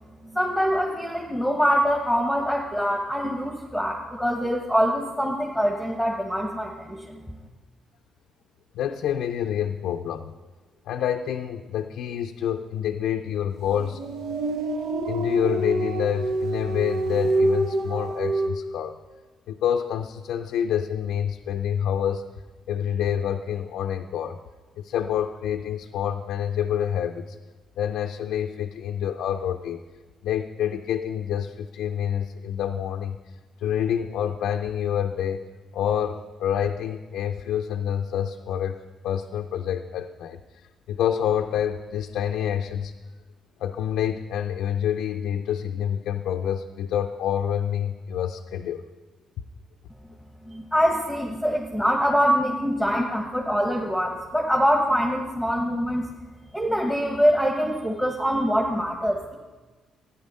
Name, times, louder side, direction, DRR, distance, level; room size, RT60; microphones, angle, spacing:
voice 1, 0.3-7.2 50.5-56.0 56.5-59.3, equal, ahead, 0 dB, 1.3 m, -24 dB
voice 2, 8.7-10.3 10.9-14.0 15.1-19.0 19.5-22.3 22.7-24.4 24.8-27.4 27.8-29.8 30.2-33.2 33.6-38.8 39.0-40.4 40.9-42.9 43.6-48.9, left 9 dB, 85° left, 4 dB, 0.5 m, -27 dB
sound 1, 13.7-18.5, right 2 dB, 90° right, 1.0 m, -26 dB
12.5 x 9.8 x 5.5 m, 1.3 s
cardioid pair, 90°, 0 cm